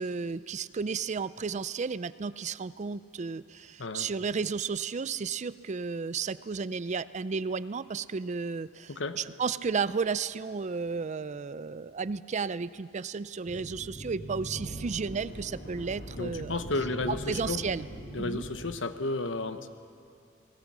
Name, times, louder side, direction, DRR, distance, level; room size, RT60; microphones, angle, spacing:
voice 1, 0.0-16.6 17.1-17.9 18.2-18.4, right 5 dB, 40° right, 16 dB, 0.4 m, -33 dB
voice 2, 8.9-9.2 16.2-17.6 18.1-19.7, left 2 dB, 80° left, 10 dB, 1.1 m, -32 dB
sound 1, 13.5-18.7, right 1 dB, 55° left, 4.1 m, -42 dB
29.5 x 19.0 x 6.1 m, 2.4 s
head